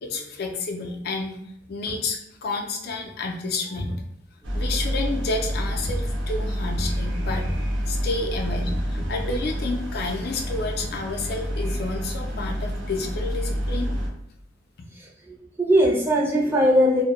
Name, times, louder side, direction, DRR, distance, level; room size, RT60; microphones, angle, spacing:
voice 1, 0.0-1.3 1.7-3.9 4.5-7.4 7.9-13.9, left 3 dB, 55° left, 2 dB, 0.4 m, -30 dB
sound 1, 1.6-2.0 2.5-2.6 2.9-3.4 3.7-4.1 5.5-6.1 6.4-7.7 8.3-9.7 10.5-11.4, equal, 45° right, 0.7 m, -36 dB
sound 2, 4.4-14.1, equal, 85° right, 0.7 m, -28 dB
voice 2, 14.9-17.0, equal, 10° right, -3 dB, 0.5 m, -21 dB
2.2 x 2.0 x 2.9 m, 0.78 s
head